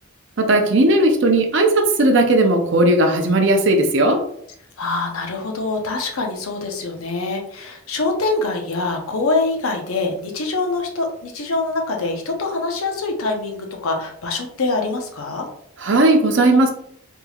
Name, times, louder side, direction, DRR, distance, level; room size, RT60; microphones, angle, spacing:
voice 1, 0.4-4.2 15.8-16.7, right 2 dB, 60° right, 4 dB, 0.6 m, -16 dB
voice 2, 4.8-15.5, left 3 dB, 85° left, 2 dB, 0.7 m, -24 dB
3.5 x 3.1 x 2.3 m, 0.69 s
head